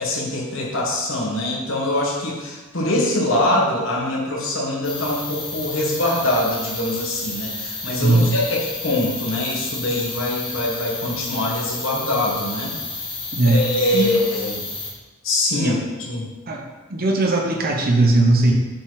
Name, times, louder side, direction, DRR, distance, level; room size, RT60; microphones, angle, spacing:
voice 1, 0.0-12.7 13.5-14.6 15.2-15.7 16.1-16.3, left 1 dB, 60° left, -3 dB, 1.7 m, -23 dB
sound 1, 4.8-14.9, left 3 dB, 20° left, 1.3 m, -31 dB
voice 2, 8.0-8.4 13.3-13.6 13.9-14.2 15.6-15.8 16.5-16.6 16.9-18.5, right 2 dB, 45° right, 1 dB, 1.0 m, -18 dB
7.4 x 4.8 x 4.0 m, 1.2 s
head